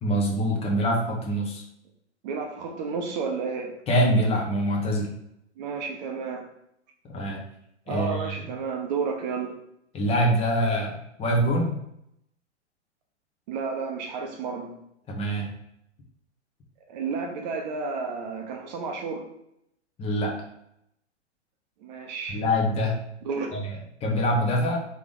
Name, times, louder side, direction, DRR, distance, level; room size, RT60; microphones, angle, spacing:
voice 1, 0.0-1.6 3.9-5.1 7.1-7.4 7.9-8.4 9.9-11.8 15.1-15.5 20.0-20.3 22.3-23.0 23.5-24.8, equal, 15° left, -1 dB, 0.9 m, -25 dB
voice 2, 2.2-3.8 5.6-6.5 7.9-9.5 13.5-14.8 16.9-19.2 21.8-22.4 23.2-23.6, right 5 dB, 35° right, 3 dB, 0.7 m, -31 dB
3.8 x 3.4 x 3.6 m, 0.78 s
figure-of-eight pair, 115°, 35 cm